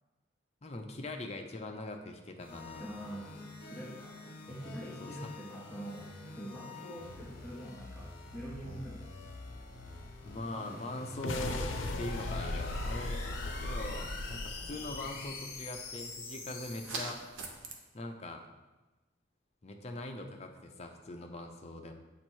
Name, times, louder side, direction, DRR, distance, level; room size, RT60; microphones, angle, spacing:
voice 1, 0.6-2.9 5.0-5.2 10.2-13.3 13.6-17.2 17.9-18.5 19.6-21.9, left 1 dB, 35° left, 4 dB, 0.5 m, -42 dB
sound 1, 2.4-17.3, left 3 dB, 55° left, 1.0 m, -46 dB
voice 2, 2.8-4.1 4.5-6.0 6.3-8.1 8.3-9.0, right 1 dB, ahead, -8 dB, 0.8 m, -44 dB
sound 2, 11.1-15.6, left 2 dB, 90° left, 0.5 m, -37 dB
sound 3, 12.6-17.8, right 3 dB, 85° right, 0.8 m, -47 dB
7.7 x 2.9 x 4.5 m, 1.1 s
head